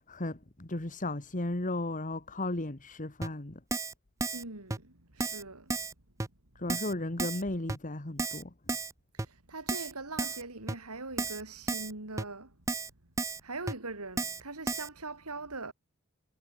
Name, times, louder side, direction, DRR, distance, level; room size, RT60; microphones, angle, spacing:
voice 1, 0.0-3.6 6.5-8.5, left 2 dB, 35° left, 1.6 m, -35 dB
Keyboard (musical), 3.2-3.3 3.7-3.9 4.2-4.4 4.7-4.8 5.2-5.4 5.7-5.9 6.2-6.3 6.7-6.9 7.2-7.4 7.7-7.8 8.2-8.4 8.7-8.9 9.2-9.3 9.7-9.9 10.2-10.4 10.7-10.8 11.2-11.4 11.7-11.9 12.2-12.3 12.7-12.9 13.2-13.4 13.7-13.8 14.2-14.4 14.7-14.9, right 3 dB, 15° right, 0.5 m, -33 dB
voice 2, 4.3-5.9 9.1-12.6 13.4-15.7, right 3 dB, 90° right, 4.5 m, -42 dB
head